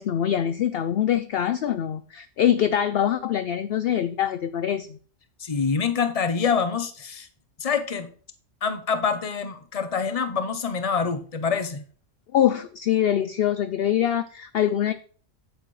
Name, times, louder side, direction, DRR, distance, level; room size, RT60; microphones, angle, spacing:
voice 1, 0.0-5.0 12.3-14.9, left 10 dB, 60° left, 11 dB, 0.7 m, -24 dB
voice 2, 5.4-7.3 7.6-8.1 8.6-11.8, left 6 dB, 35° left, 10 dB, 0.8 m, -26 dB
8.9 x 8.9 x 3.2 m, 0.43 s
omnidirectional pair, 1.3 m